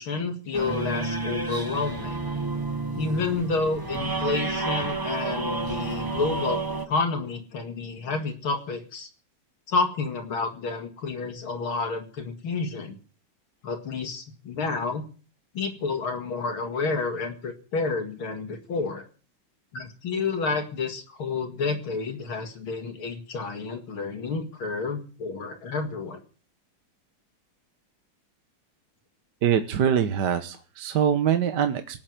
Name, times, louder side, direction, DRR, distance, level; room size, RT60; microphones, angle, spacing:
voice 1, 0.0-2.2 3.0-9.1 9.7-13.0 13.6-15.0 15.5-19.0 19.7-26.2, left 4 dB, 80° left, 3 dB, 3.0 m, -30 dB
sound 1, 0.5-6.9, right 3 dB, 20° right, 0.6 m, -30 dB
voice 2, 29.4-32.0, right 8 dB, 60° right, 9 dB, 1.6 m, -24 dB
18.5 x 7.9 x 9.3 m, 0.40 s
omnidirectional pair, 2.2 m